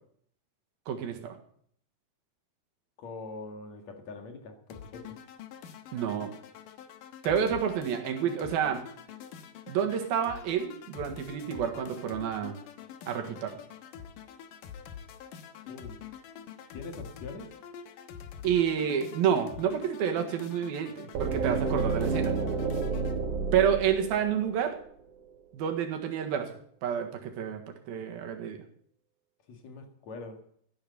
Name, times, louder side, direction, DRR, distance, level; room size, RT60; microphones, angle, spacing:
voice 1, 0.9-1.4 5.9-6.3 7.3-8.8 9.7-12.5 13.1-13.6 18.4-22.3 23.5-24.7 25.5-26.5 26.8-28.6, right 8 dB, 80° right, 4 dB, 3.5 m, -29 dB
voice 2, 3.0-5.2 15.6-16.0 16.7-17.5 29.5-30.4, left 3 dB, 55° left, 4 dB, 2.8 m, -43 dB
sound 1, 4.7-23.2, left 8 dB, 70° left, 2.6 m, -46 dB
sound 2, 21.1-25.0, right 4 dB, 60° right, 2.8 m, -30 dB
14.0 x 10.5 x 6.9 m, 0.63 s
omnidirectional pair, 4.3 m